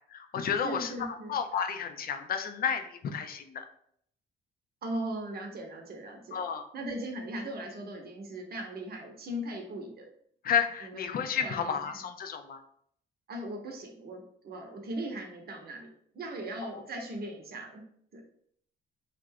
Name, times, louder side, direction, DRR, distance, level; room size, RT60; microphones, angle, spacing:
voice 1, 0.1-3.6 6.3-6.7 10.4-12.6 16.6-16.8, left 7 dB, 50° left, 6 dB, 0.4 m, -32 dB
voice 2, 0.6-1.4 4.8-6.4 6.7-10.1 10.8-11.1 11.4-12.0 13.3-15.9 16.1-17.8 18.1-18.2, right 1 dB, 50° right, 2 dB, 0.8 m, -38 dB
2.4 x 2.2 x 3.4 m, 0.65 s
cardioid pair, 90°, 20 cm